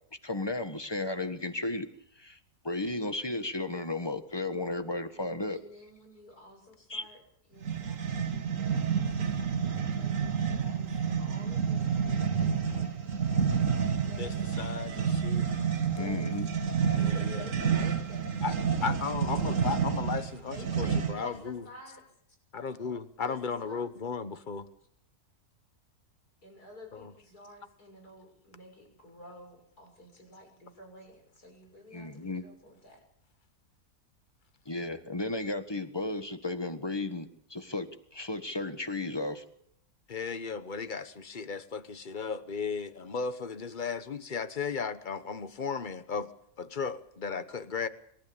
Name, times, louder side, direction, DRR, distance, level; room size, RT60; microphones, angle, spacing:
voice 1, 0.2-1.9 2.2-2.4 2.6-5.6 6.9-7.0 16.0-16.5 31.9-32.4 34.6-39.4, left 2 dB, 15° left, 1.4 m, -34 dB
voice 2, 5.5-7.2 7.5-12.9 13.2-13.4 14.0-14.8 15.8-16.3 17.0-18.3 18.8-19.0 20.5-22.0 23.2-23.9 26.4-33.0, equal, 85° left, 7.1 m, -51 dB
sound 1, 7.6-21.3, right 7 dB, 55° right, 1.8 m, -29 dB
voice 3, 14.2-15.5 17.0-17.4 18.4-18.5 18.8-21.7 22.5-24.7 26.9-27.1 40.1-46.3 46.6-47.9, left 5 dB, 35° left, 1.1 m, -35 dB
26.0 x 13.5 x 8.7 m
omnidirectional pair, 1.6 m